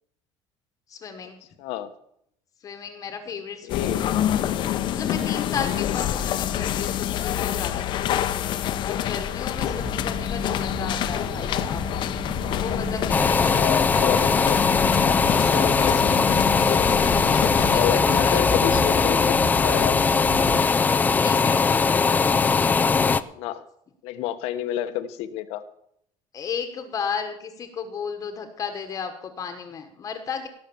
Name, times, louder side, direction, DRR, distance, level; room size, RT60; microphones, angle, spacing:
voice 1, 0.9-1.4 2.6-4.2 4.9-11.8 12.2-13.6 15.5-16.1 17.5-19.0 21.2-21.9 26.3-30.5, left 6 dB, 35° left, 7 dB, 1.3 m, -34 dB
voice 2, 1.6-1.9 3.6-4.1 6.2-6.3 13.4-14.8 15.2-16.4 17.7-20.0 23.3-23.6 24.0-25.6, left 12 dB, 80° left, 11 dB, 1.1 m, -29 dB
sound 1, 3.7-17.8, left 10 dB, 50° left, 0.8 m, -27 dB
sound 2, 9.5-20.6, right 1 dB, 20° right, 1.6 m, -34 dB
hand dryer, 13.1-23.2, left 5 dB, 15° left, 0.4 m, -20 dB
17.5 x 6.5 x 7.1 m, 0.73 s
cardioid pair, 155°, 10 cm